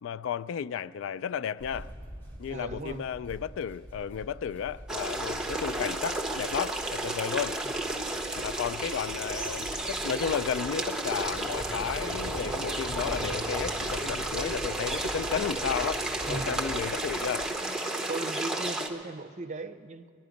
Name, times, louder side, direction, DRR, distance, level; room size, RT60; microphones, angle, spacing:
voice 1, 0.0-1.9 2.4-7.6 8.3-17.5, left 7 dB, 75° left, 0.3 m, -33 dB
sound 1, 1.6-17.4, equal, 10° left, 2.4 m, -44 dB
voice 2, 2.5-3.0 7.6-7.8 16.3-16.6 18.1-20.1, right 2 dB, 35° right, 0.6 m, -37 dB
sound 2, 4.9-18.9, right 2 dB, 5° right, 0.9 m, -32 dB
22.5 x 10.5 x 5.1 m
head